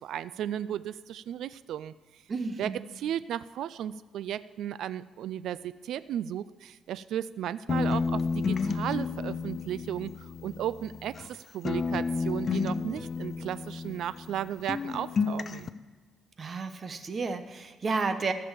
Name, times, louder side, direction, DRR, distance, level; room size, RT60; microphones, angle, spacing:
voice 1, 0.0-2.2 2.6-15.7, right 10 dB, 75° right, 16 dB, 0.3 m, -35 dB
voice 2, 2.3-2.8 16.4-18.3, right 4 dB, 35° right, 9 dB, 0.9 m, -32 dB
sound 1, 7.7-11.3 11.6-14.4 14.7-15.7, left 4 dB, 35° left, 0.5 m, -31 dB
14.5 x 6.9 x 7.2 m, 1.5 s
cardioid pair, 145°, 0 cm